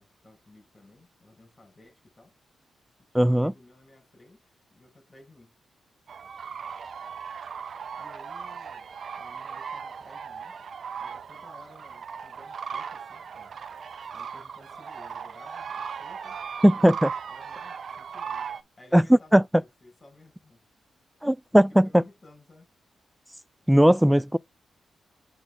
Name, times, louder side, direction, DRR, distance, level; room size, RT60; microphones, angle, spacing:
voice 1, 0.0-2.3 3.1-5.5 8.0-10.6 11.0-13.6 14.1-20.6 21.5-22.7, left 2 dB, 35° left, 5.5 m, -55 dB
voice 2, 3.1-3.5 16.6-17.1 18.9-19.4 21.2-22.0 23.7-24.4, equal, 5° right, 0.4 m, -18 dB
sound 1, 6.1-18.6, right 6 dB, 65° right, 0.7 m, -38 dB
8.0 x 3.5 x 4.9 m
supercardioid pair, 50°, 0 cm